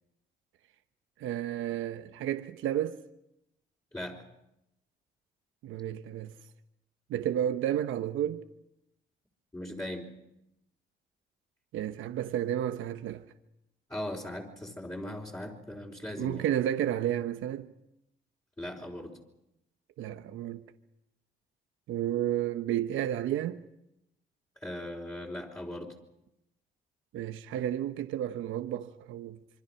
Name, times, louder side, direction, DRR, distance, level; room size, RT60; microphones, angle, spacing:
voice 1, 1.2-3.0 5.6-6.3 7.1-8.5 11.7-13.2 16.2-17.7 20.0-20.6 21.9-23.6 27.1-29.4, right 11 dB, 85° right, 1.0 m, -31 dB
voice 2, 3.9-4.3 9.5-10.1 13.9-16.5 18.6-19.2 24.6-25.9, left 1 dB, 15° left, 4.3 m, -39 dB
26.0 x 24.5 x 5.8 m
cardioid pair, 90°, 20 cm